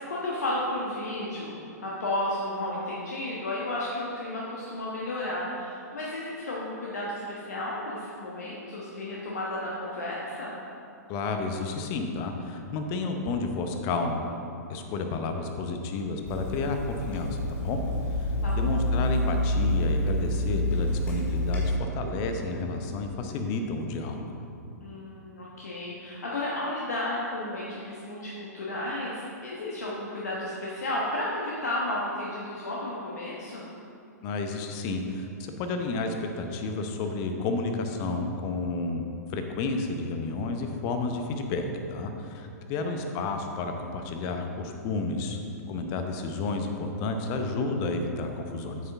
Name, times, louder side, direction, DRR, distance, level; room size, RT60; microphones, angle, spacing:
voice 1, 0.0-10.6 18.4-18.9 24.8-33.7 42.8-43.0, left 1 dB, 65° left, -5 dB, 1.2 m, -33 dB
voice 2, 11.1-14.2 14.7-17.8 18.5-24.3 34.2-41.7 41.9-45.4 45.7-48.8, left 3 dB, 30° left, 5 dB, 0.8 m, -31 dB
Water tap faucet / Sink (filling or washing), 16.2-21.8, left 1 dB, 15° left, 1.7 m, -28 dB
8.5 x 6.7 x 3.5 m, 2.6 s
figure-of-eight pair, 110°, 9 cm